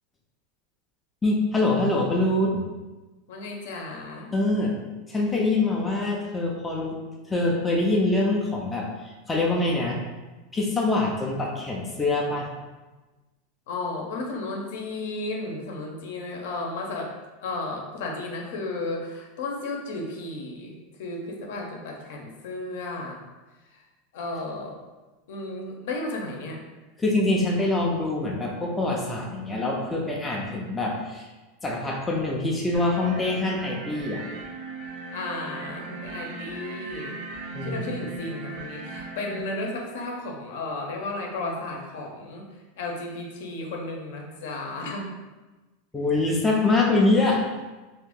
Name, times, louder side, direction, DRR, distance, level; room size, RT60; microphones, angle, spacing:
voice 1, 1.2-2.6 4.3-4.7 5.1-7.0 7.3-10.0 10.5-12.5 27.0-31.3 31.6-34.2 37.5-37.8 45.9-47.4, left 2 dB, 10° left, -2 dB, 0.4 m, -24 dB
voice 2, 3.3-4.3 13.7-17.1 17.4-20.7 21.0-23.2 24.1-24.7 25.3-26.6 35.1-37.2 37.6-42.4 42.8-45.1, left 2 dB, 70° left, 0 dB, 0.7 m, -33 dB
sound 1, 32.7-39.4, right 3 dB, 60° right, 0.6 m, -38 dB
2.7 x 2.6 x 3.6 m, 1.2 s
supercardioid pair, 165°, 0 cm